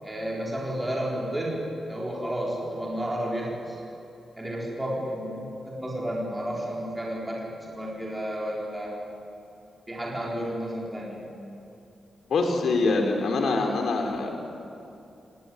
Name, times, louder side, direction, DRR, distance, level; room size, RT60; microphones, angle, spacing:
voice 1, 0.0-3.8 4.4-8.9 9.9-11.3, equal, 10° right, -4 dB, 4.5 m, -32 dB
voice 2, 12.3-14.3, left 3 dB, 70° left, 3 dB, 3.9 m, -24 dB
29.0 x 19.0 x 9.7 m, 2.7 s
wide cardioid pair, 155°, 0 cm